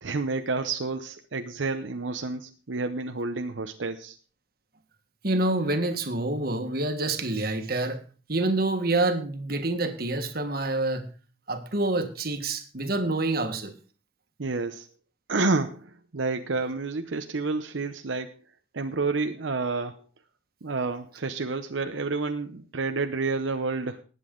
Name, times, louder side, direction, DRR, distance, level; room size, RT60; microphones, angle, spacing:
voice 1, 0.0-4.2 14.4-14.9 15.3-18.4 18.7-20.0 20.6-24.0, right 3 dB, 80° right, 7 dB, 0.8 m, -29 dB
voice 2, 5.2-8.0 8.3-11.1 11.5-13.7, right 2 dB, 50° right, 7 dB, 1.6 m, -27 dB
19.5 x 8.2 x 3.8 m, 0.37 s
head